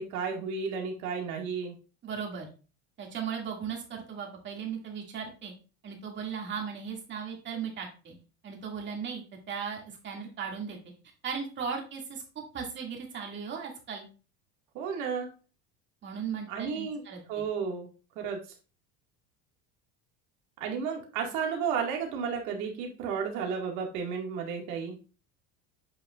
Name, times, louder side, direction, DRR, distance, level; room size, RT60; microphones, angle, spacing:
voice 1, 0.0-1.8 14.7-15.3 16.5-17.0 17.3-17.9 18.2-18.4 20.6-25.0, right 6 dB, 65° right, 2 dB, 2.0 m, -32 dB
voice 2, 2.0-2.5 3.0-5.5 5.8-8.1 8.4-10.8 11.2-12.2 12.5-14.0 16.0-17.5, right 6 dB, 35° right, 1 dB, 2.3 m, -37 dB
8.5 x 5.5 x 2.4 m, 0.35 s
cardioid pair, 135°, 32 cm